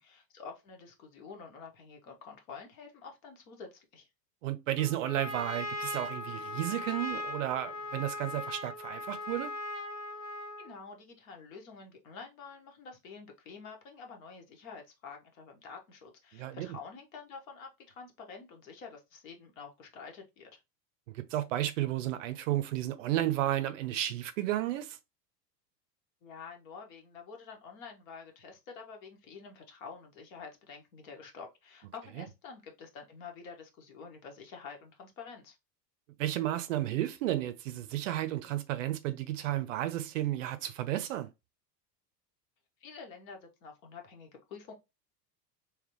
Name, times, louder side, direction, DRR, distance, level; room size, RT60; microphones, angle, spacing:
voice 1, 0.0-4.1 10.6-20.6 26.2-35.6 42.8-44.7, left 5 dB, 55° left, 1.4 m, -48 dB
voice 2, 4.4-9.5 16.3-16.7 21.1-25.0 32.2-32.3 36.2-41.3, right 13 dB, 50° right, 0.6 m, -32 dB
Trumpet, 4.8-10.8, left 2 dB, 25° left, 1.2 m, -39 dB
3.4 x 3.2 x 3.0 m
figure-of-eight pair, 80°, 50 cm